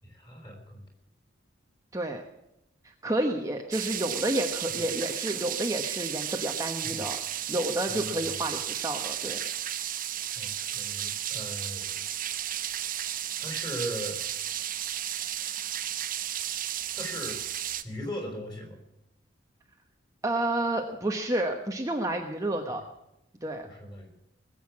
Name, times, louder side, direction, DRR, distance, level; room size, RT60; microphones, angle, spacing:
voice 1, 0.0-0.9 4.7-4.9 6.8-7.1 7.9-8.5 10.3-12.0 13.4-14.2 15.4-15.7 16.9-17.4 17.8-18.8 22.7-22.8 23.6-24.1, equal, 20° left, 2 dB, 4.5 m, -39 dB
voice 2, 2.8-9.4 20.2-22.8 23.4-23.7, right 1 dB, 15° right, 2 dB, 1.1 m, -30 dB
sound 1, 3.7-17.8, right 11 dB, 45° right, 0.8 m, -33 dB
20.0 x 8.0 x 7.4 m, 0.86 s
head